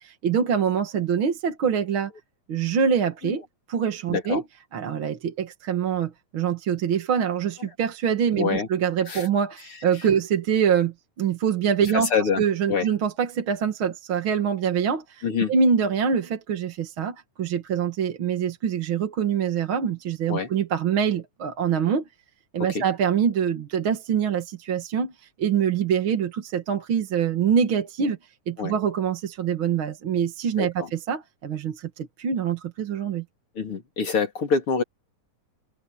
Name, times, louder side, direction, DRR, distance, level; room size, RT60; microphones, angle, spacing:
voice 1, 0.0-2.1 2.5-3.4 3.7-4.4 4.7-12.1 12.4-15.2 15.5-22.0 22.5-28.2 28.5-33.2, right 7 dB, 50° right, 2.1 m, -25 dB
voice 2, 4.1-4.4 7.6-7.7 8.4-8.7 9.1-9.3 11.8-12.4 12.7-12.9 15.2-15.5 20.3-20.5 22.7-22.8 28.6-28.7 30.6-30.9 33.6-34.8, left 5 dB, 45° left, 3.8 m, -26 dB
omnidirectional pair, 3.5 m